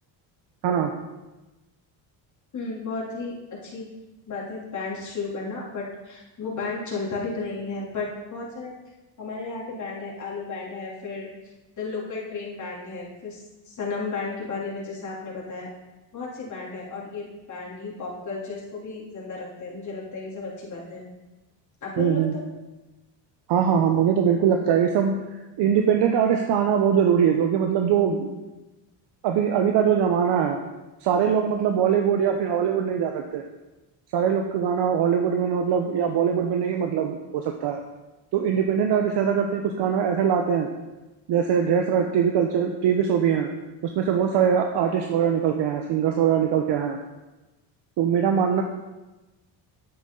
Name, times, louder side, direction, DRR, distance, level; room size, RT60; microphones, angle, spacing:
voice 1, 2.5-3.9 4.3-8.8 9.2-11.3 11.8-15.7 16.1-21.0 21.8-22.4, left 4 dB, 40° left, -4 dB, 3.2 m, -33 dB
voice 2, 22.0-22.3 23.5-25.2 25.6-28.3 29.2-30.6 31.0-33.4 34.1-37.8 38.3-40.7 41.3-43.5 43.8-47.0 48.0-48.6, right 8 dB, 65° right, 4 dB, 1.0 m, -22 dB
10.0 x 8.5 x 3.9 m, 1.1 s
cardioid pair, 105°, 45 cm